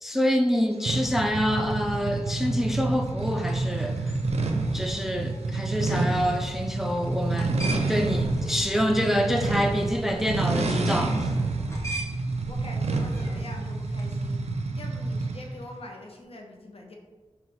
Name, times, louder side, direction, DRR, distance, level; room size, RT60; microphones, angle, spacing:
voice 1, 0.0-4.1 4.7-7.6 7.9-11.3, equal, 5° right, 4 dB, 0.3 m, -26 dB
sound 1, 0.9-15.5, right 3 dB, 75° right, 0.4 m, -28 dB
sound 2, 3.2-14.5, right 1 dB, 25° left, 0.9 m, -43 dB
voice 2, 12.5-14.4 14.7-17.0, left 1 dB, 60° left, 1 dB, 0.6 m, -43 dB
4.1 x 2.3 x 3.4 m, 1.3 s
cardioid pair, 45°, 11 cm